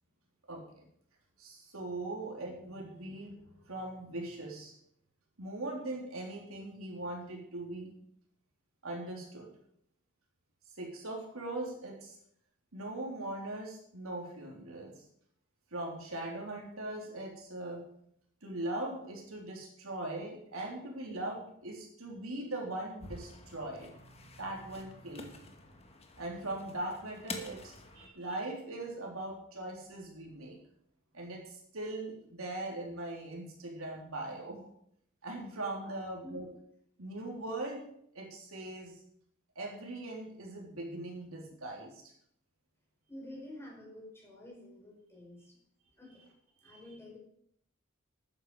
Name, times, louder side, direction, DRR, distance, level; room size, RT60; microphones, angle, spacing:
voice 1, 1.4-3.4 3.6-4.7 5.4-7.9 8.8-9.5 10.8-12.2 12.7-14.9 15.7-17.8 18.4-25.5 26.2-30.6 31.1-34.7 35.2-36.5 37.0-37.9 38.1-39.0 39.6-42.0 46.6-46.8, right 2 dB, 80° right, 0 dB, 3.5 m, -40 dB
sound 1, 23.0-28.1, left 3 dB, 30° left, 1.5 m, -48 dB
voice 2, 43.1-45.6 46.0-46.2 46.6-47.2, left 1 dB, 10° left, -2 dB, 4.8 m, -49 dB
13.0 x 9.7 x 4.9 m, 0.70 s
head